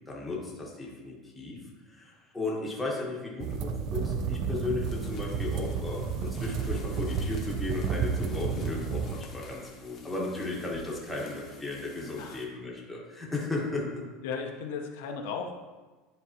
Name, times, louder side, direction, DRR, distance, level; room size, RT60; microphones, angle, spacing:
voice 1, 0.0-1.6 1.9-14.0, left 3 dB, 5° left, -4 dB, 1.1 m, -35 dB
sound 1, 3.4-9.2, right 6 dB, 45° right, 0.4 m, -31 dB
sound 2, 4.8-12.4, left 3 dB, 30° left, 0.9 m, -51 dB
voice 2, 14.2-15.5, left 5 dB, 80° left, 3 dB, 0.7 m, -35 dB
9.8 x 4.0 x 2.8 m, 1.3 s
cardioid pair, 170°, 0 cm